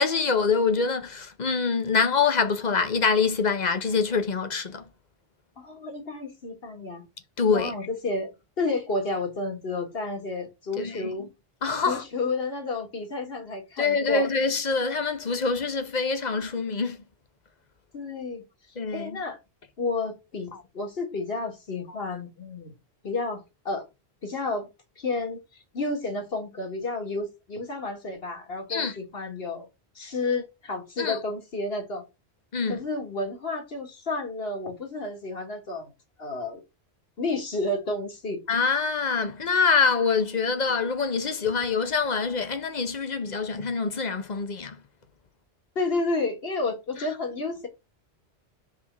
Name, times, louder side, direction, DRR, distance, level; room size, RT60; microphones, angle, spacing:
voice 1, 0.0-4.9 7.4-7.7 10.8-11.1 11.6-12.0 13.8-17.0 18.8-19.2 20.5-20.6 28.7-29.0 31.0-31.2 32.5-32.8 38.5-44.8 47.0-47.1, left 5 dB, 45° left, 0.9 m, -25 dB
voice 2, 5.6-7.1 7.5-11.3 11.9-14.3 17.9-18.4 18.9-19.4 19.8-22.7 23.0-23.8 24.2-24.7 25.0-29.7 30.0-32.0 32.7-35.9 36.2-36.6 37.2-38.4 45.8-47.7, left 3 dB, 65° left, 1.9 m, -31 dB
5.0 x 3.5 x 5.4 m
omnidirectional pair, 1.1 m